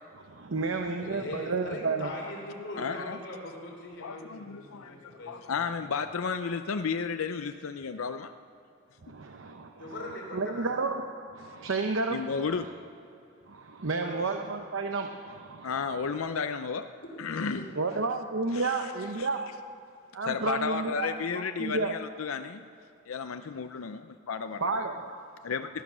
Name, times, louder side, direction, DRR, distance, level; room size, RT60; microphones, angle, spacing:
voice 1, 0.3-2.1 9.0-9.9 10.3-11.0 11.3-12.5 13.5-15.7 17.7-19.5 20.1-21.9 24.6-24.9, right 3 dB, 70° right, 5 dB, 0.8 m, -31 dB
voice 2, 1.0-5.9 9.8-10.8 14.0-14.4 17.0-17.1 17.5-17.7, left 1 dB, 60° left, 0 dB, 3.3 m, -41 dB
voice 3, 2.8-3.2 4.0-8.3 12.1-12.7 15.6-16.9 17.2-17.7 18.5-18.9 19.2-19.3 20.2-22.6 23.1-24.7 25.4-25.7, left 5 dB, 90° left, 8 dB, 0.5 m, -33 dB
18.0 x 11.5 x 6.2 m, 2.7 s
head